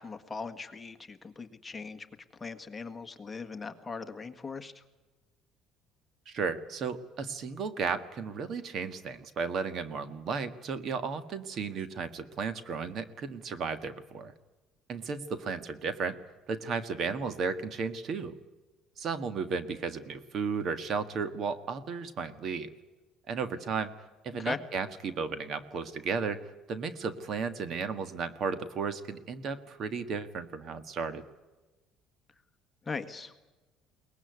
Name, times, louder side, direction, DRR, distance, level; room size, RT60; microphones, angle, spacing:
voice 1, 0.0-2.1 2.4-4.8 24.4-24.6 32.9-33.3, left 4 dB, 15° left, 7 dB, 1.6 m, -39 dB
voice 2, 6.3-14.3 14.9-16.2 16.5-18.4 19.0-22.7 23.3-23.9 24.2-31.2, right 5 dB, 45° right, 11 dB, 1.6 m, -34 dB
23.0 x 20.0 x 9.5 m, 1.2 s
cardioid pair, 140°, 0 cm